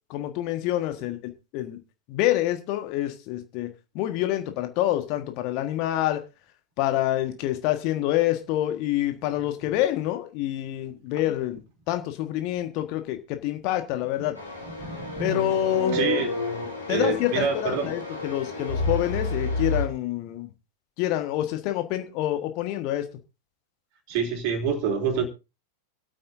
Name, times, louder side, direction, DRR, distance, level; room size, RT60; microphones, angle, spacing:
voice 1, 0.1-1.2 1.5-1.8 2.1-6.2 6.8-11.6 11.9-14.4 15.2-16.0 16.9-20.5 21.0-23.1, left 14 dB, 45° left, 1.5 m, -27 dB
sound 1, 14.3-19.8, left 3 dB, 85° left, 3.9 m, -30 dB
voice 2, 14.8-15.4 15.9-16.3 16.9-17.9 24.1-25.2, right 6 dB, 45° right, 3.1 m, -26 dB
26.0 x 8.6 x 2.7 m
figure-of-eight pair, 90°, 0 cm